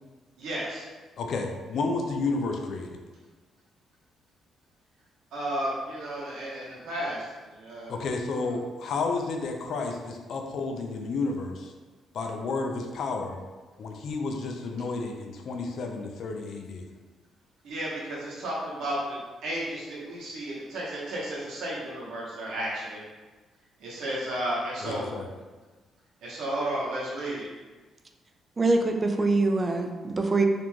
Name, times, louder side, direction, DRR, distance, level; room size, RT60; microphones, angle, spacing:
voice 1, 0.4-0.8 5.3-7.2 7.6-7.9 17.6-19.2 19.4-23.0 23.8-25.1 26.2-27.5, right 1 dB, 75° right, -6 dB, 0.7 m, -33 dB
voice 2, 1.2-3.0 7.9-11.7 12.1-13.4 13.8-16.9 24.8-25.3, left 3 dB, 65° left, 3 dB, 0.3 m, -31 dB
voice 3, 28.6-30.4, right 3 dB, 30° right, 4 dB, 0.3 m, -24 dB
2.5 x 2.1 x 3.0 m, 1.3 s
cardioid pair, 90°, 0 cm